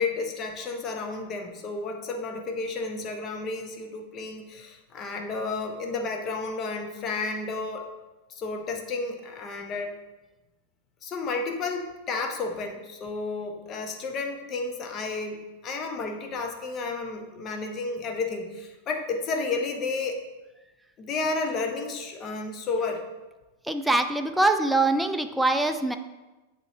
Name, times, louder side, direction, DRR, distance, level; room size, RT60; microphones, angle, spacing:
voice 1, 0.0-7.9 8.4-9.9 11.0-20.2 21.0-23.0, left 3 dB, 30° left, 3 dB, 0.8 m, -32 dB
voice 2, 23.7-26.0, right 2 dB, 5° right, 7 dB, 0.4 m, -23 dB
8.0 x 3.0 x 4.0 m, 1.1 s
figure-of-eight pair, 90°, 0 cm